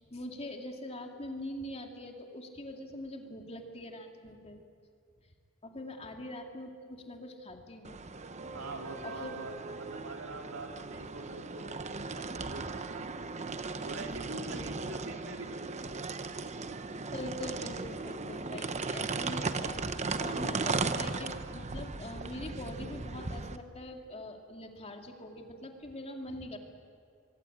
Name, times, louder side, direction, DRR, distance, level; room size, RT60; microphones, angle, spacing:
voice 1, 0.0-4.6 5.6-8.0 8.4-8.6 9.0-9.3 14.5-14.6 17.1-26.6, left 1 dB, 30° left, 3 dB, 2.6 m, -43 dB
sound 1, 7.8-23.6, right 3 dB, 35° right, 1.0 m, -37 dB
voice 2, 8.5-11.8 12.1-13.5 13.8-16.5 17.9-18.3, right 2 dB, 80° right, 2 dB, 3.9 m, -45 dB
24.5 x 23.5 x 8.7 m, 2.3 s
head